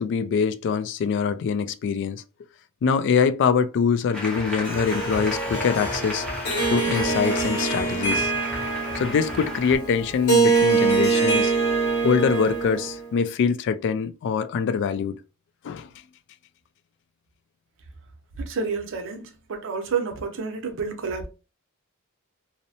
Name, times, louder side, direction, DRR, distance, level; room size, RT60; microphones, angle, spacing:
voice 1, 0.0-2.2 2.8-6.3 6.7-8.3 8.6-8.7 9.0-11.5 12.0-15.2 15.6-15.9, left 6 dB, 55° left, 0.3 m, -24 dB
Applause, 4.1-9.8, equal, 5° left, 0.7 m, -34 dB
Harp, 4.6-13.1, right 4 dB, 80° left, 1.1 m, -24 dB
voice 2, 18.4-21.3, right 5 dB, 60° right, 0.6 m, -29 dB
2.7 x 2.0 x 2.7 m
head